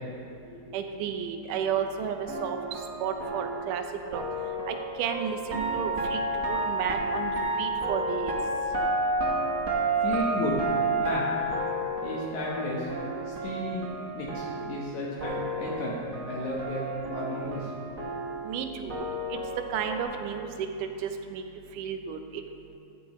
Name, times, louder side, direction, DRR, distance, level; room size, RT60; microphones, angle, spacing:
voice 1, 0.7-3.8 4.1-4.2 4.7-8.3 18.4-19.0 19.3-19.4 19.7-20.7 21.0-21.4 21.8-22.4, right 7 dB, 85° right, 6 dB, 2.3 m, -32 dB
sound 1, 2.2-14.9 15.2-20.0, right 2 dB, 60° right, 0.8 m, -31 dB
voice 2, 10.0-10.5 11.0-11.2 12.0-12.9 13.3-17.7, left 1 dB, 70° left, -5 dB, 2.6 m, -33 dB
14.5 x 11.0 x 3.1 m, 2.7 s
omnidirectional pair, 3.6 m